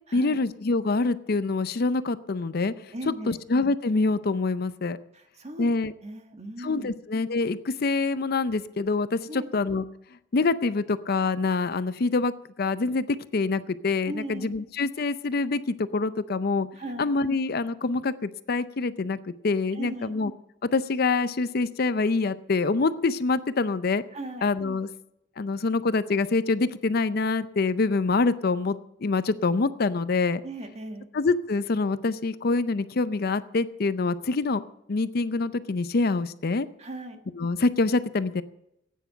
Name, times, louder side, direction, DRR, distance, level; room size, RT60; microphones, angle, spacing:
voice 1, 0.1-5.0 5.6-5.9 6.6-9.8 10.3-16.7 17.0-19.2 19.4-20.3 20.6-24.0 24.4-24.9 25.4-30.4 31.1-34.6 34.9-36.7 37.4-38.4, left 3 dB, 55° left, 14 dB, 0.5 m, -25 dB
voice 2, 2.9-3.4 5.1-5.7 6.0-6.9 9.3-9.6 14.0-14.5 16.7-17.1 19.7-20.1 24.1-24.5 30.4-31.1 36.8-37.2, right 1 dB, 35° right, 6 dB, 1.4 m, -38 dB
14.5 x 9.3 x 6.6 m, 0.82 s
head